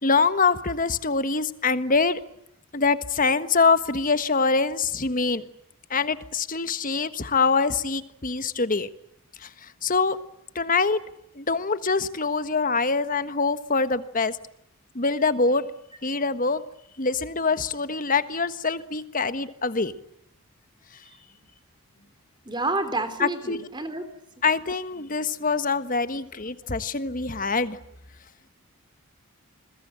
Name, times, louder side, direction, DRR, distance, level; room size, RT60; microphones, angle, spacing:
voice 1, 0.0-2.2 2.7-5.5 5.9-8.9 9.4-10.2 10.5-11.0 11.3-14.4 14.9-15.6 16.0-16.6 17.0-19.9 23.2-23.6 24.4-27.8, left 4 dB, 40° left, 12 dB, 1.4 m, -24 dB
voice 2, 22.5-24.1, right 2 dB, 20° right, 10 dB, 3.7 m, -29 dB
28.5 x 22.0 x 8.9 m, 0.77 s
head